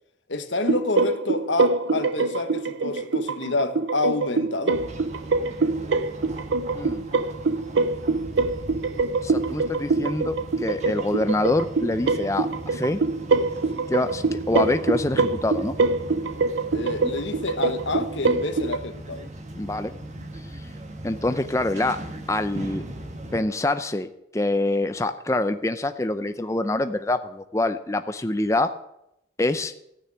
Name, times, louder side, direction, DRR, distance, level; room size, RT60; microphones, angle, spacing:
voice 1, 0.3-4.8 16.7-19.3, left 2 dB, 80° left, 1.3 m, -28 dB
sound 1, 0.6-18.8, right 3 dB, 85° right, 0.7 m, -25 dB
sound 2, 4.7-23.4, right 1 dB, 35° right, 1.7 m, -39 dB
voice 2, 9.2-13.0 13.9-15.7 19.6-19.9 21.0-22.0 22.3-22.8 23.3-28.7 29.4-29.7, left 2 dB, 15° left, 0.5 m, -25 dB
15.0 x 6.7 x 9.8 m
head